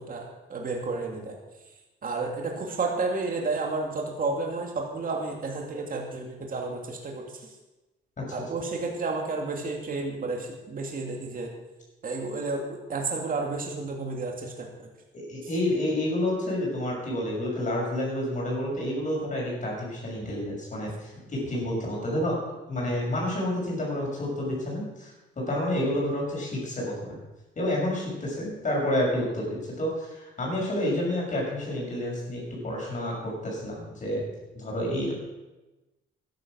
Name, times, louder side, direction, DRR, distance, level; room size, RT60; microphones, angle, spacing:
voice 1, 0.0-1.4 2.0-7.6 8.3-11.5 12.0-14.9, right 3 dB, 45° right, 1 dB, 2.6 m, -31 dB
voice 2, 15.1-22.4 22.7-27.2 27.5-34.2 34.5-35.1, left 1 dB, 40° left, -3 dB, 6.4 m, -29 dB
13.0 x 10.5 x 6.3 m, 1.1 s
cardioid pair, 90°, 20 cm